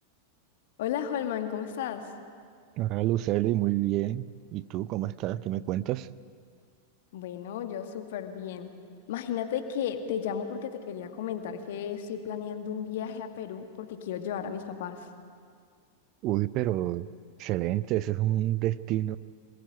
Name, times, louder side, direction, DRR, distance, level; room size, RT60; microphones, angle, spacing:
voice 1, 0.8-2.1 7.1-8.7 9.1-15.1, left 8 dB, 55° left, 7 dB, 2.2 m, -34 dB
voice 2, 2.8-4.3 4.5-6.1 16.2-17.1 17.4-19.2, right 15 dB, 40° right, 18 dB, 0.6 m, -28 dB
27.5 x 20.0 x 9.4 m, 2.2 s
figure-of-eight pair, 90°, 0 cm